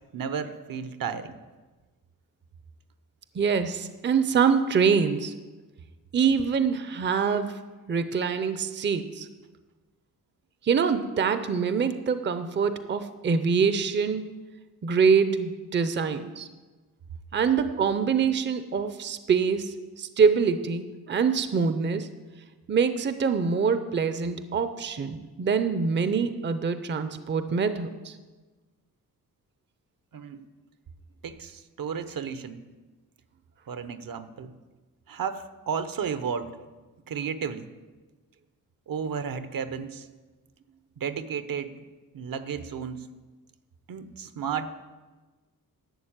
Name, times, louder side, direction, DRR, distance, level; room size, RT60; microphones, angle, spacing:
voice 1, 0.1-1.4 30.1-30.4 31.2-32.6 33.7-34.5 35.1-36.5 37.1-37.7 38.9-40.1 41.0-41.7 42.1-43.1 43.9-44.7, right 7 dB, 70° right, 11 dB, 0.9 m, -33 dB
voice 2, 3.3-5.3 6.1-7.6 7.9-9.3 10.6-14.4 14.8-16.5 17.3-22.1 22.7-28.2, right 6 dB, 30° right, 10 dB, 0.6 m, -25 dB
12.0 x 7.2 x 8.8 m, 1.3 s
wide cardioid pair, 155°, 35 cm